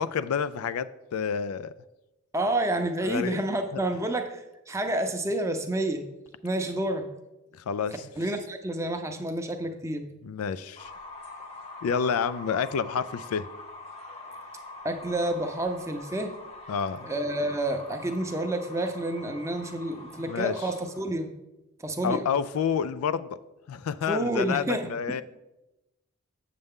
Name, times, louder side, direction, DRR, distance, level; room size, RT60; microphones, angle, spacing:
voice 1, 0.0-1.7 3.0-3.4 3.7-3.8 7.5-8.1 10.2-10.9 11.8-13.5 16.7-17.1 20.3-20.5 22.0-23.4 23.7-25.2, left 6 dB, 85° left, 15 dB, 0.4 m, -29 dB
voice 2, 2.3-6.1 6.4-7.1 8.2-10.0 14.8-16.3 17.0-21.3 21.8-22.3 24.1-24.9, right 1 dB, 15° right, 5 dB, 0.6 m, -29 dB
sound 1, 10.8-21.1, left 2 dB, 30° left, 0.9 m, -44 dB
7.9 x 6.6 x 3.6 m, 0.98 s
head